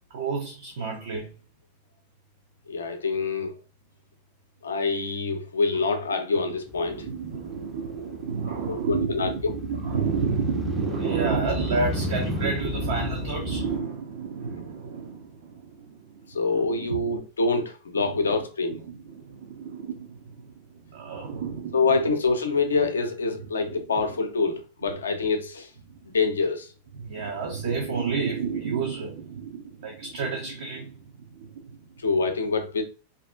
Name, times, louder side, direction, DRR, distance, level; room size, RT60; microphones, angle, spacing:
voice 1, 0.1-1.3 6.9-17.1 18.0-18.4 18.7-22.0 23.6-23.8 24.9-25.0 25.9-26.0 26.9-31.9, right 5 dB, 55° right, 0.5 m, -31 dB
voice 2, 2.7-3.5 4.6-7.0 8.7-9.3 16.3-18.8 21.7-25.7 26.1-26.7 32.0-32.8, left 4 dB, 70° left, 0.4 m, -25 dB
Motorcycle, 6.7-13.8, left 2 dB, ahead, 0.4 m, -34 dB
2.5 x 2.4 x 2.2 m
figure-of-eight pair, 90°, 0 cm